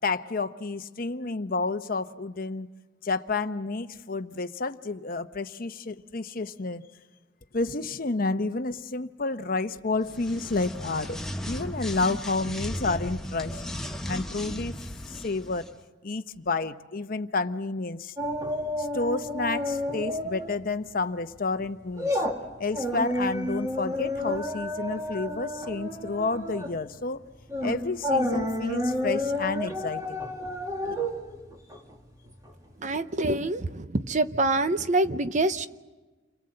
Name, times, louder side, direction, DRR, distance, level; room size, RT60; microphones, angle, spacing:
voice 1, 0.0-2.7 3.0-6.9 7.5-11.2 11.5-13.6 14.1-14.8 15.1-15.7 16.0-18.1 18.8-22.2 22.6-27.2 27.6-30.2 30.8-31.0, left 3 dB, 50° left, 10 dB, 0.9 m, -30 dB
sound 1, 10.0-15.7, equal, 5° left, 1.1 m, -36 dB
sound 2, 18.2-20.6 20.9-21.1 21.5-32.5 32.8-32.9, left 1 dB, 20° right, 2.2 m, -30 dB
voice 2, 32.8-35.7, right 2 dB, 40° right, 11 dB, 0.8 m, -26 dB
29.5 x 22.5 x 7.8 m, 1.2 s
head